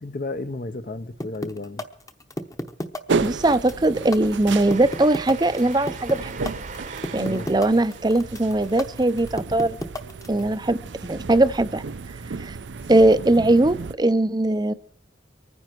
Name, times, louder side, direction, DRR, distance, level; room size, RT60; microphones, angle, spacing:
voice 1, 0.0-1.9 7.1-7.5 12.8-12.9, left 2 dB, 45° left, 0.6 m, -33 dB
sound 1, 1.2-10.4, left 1 dB, 20° left, 0.8 m, -31 dB
sound 2, 3.1-13.9, right 4 dB, 75° right, 0.5 m, -33 dB
voice 2, 3.2-6.5 7.1-9.8 10.3-11.8 12.4-12.6 12.9-14.7, right 2 dB, 20° right, 0.5 m, -20 dB
Train, 4.6-10.8, right 4 dB, 40° right, 0.9 m, -42 dB
24.0 x 9.8 x 4.5 m
head